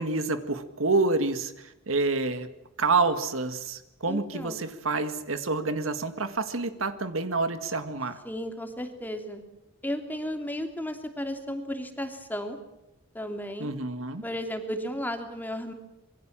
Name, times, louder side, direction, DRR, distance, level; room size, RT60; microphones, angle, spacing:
voice 1, 0.0-2.5 2.8-8.2 13.6-14.2, right 3 dB, 75° right, 9 dB, 1.9 m, -28 dB
voice 2, 4.1-4.6 8.2-9.4 9.8-12.6 13.1-13.7 14.2-15.7, equal, 10° left, 5 dB, 3.0 m, -34 dB
26.5 x 23.0 x 7.5 m, 0.90 s
head